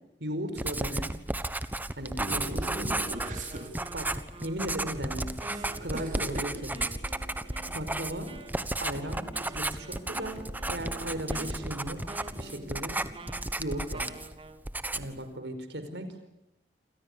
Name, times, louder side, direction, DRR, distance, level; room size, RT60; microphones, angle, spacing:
voice 1, 0.2-1.1 1.9-3.0 3.9-5.4 5.8-6.7 7.1-7.3 7.7-8.3 8.8-10.4 10.7-13.0 13.6-14.1 14.9-16.2, right 1 dB, 75° right, 9 dB, 5.0 m, -37 dB
Writing, 0.6-14.4 14.6-15.2, right 2 dB, 10° right, 1.3 m, -34 dB
voice 2, 2.2-3.8 5.5-6.6, right 1 dB, 45° right, 3 dB, 4.4 m, -39 dB
Wind instrument woodwind instrument, 2.9-14.6, right 2 dB, 30° right, 2.1 m, -49 dB
sound 1, 3.5-14.6, left 1 dB, 50° left, 7.8 m, -54 dB
28.5 x 27.5 x 6.9 m, 0.86 s
head